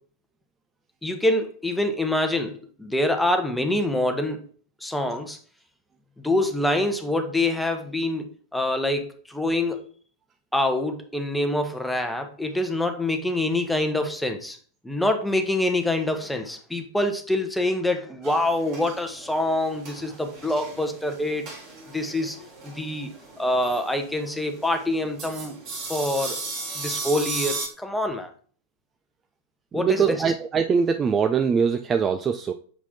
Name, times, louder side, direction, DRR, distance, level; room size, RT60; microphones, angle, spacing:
voice 1, 1.0-4.4 4.8-5.4 6.2-9.8 10.5-14.6 14.8-21.5 21.9-22.4 22.6-25.6 25.9-26.4 26.7-28.3 29.7-30.3, left 1 dB, 5° left, 5 dB, 1.2 m, -25 dB
sound 1, 18.2-27.7, right 3 dB, 40° right, 2.5 m, -37 dB
voice 2, 29.7-32.5, right 6 dB, 20° right, 8 dB, 0.4 m, -22 dB
7.2 x 4.8 x 3.5 m, 0.44 s
figure-of-eight pair, 90°, 0 cm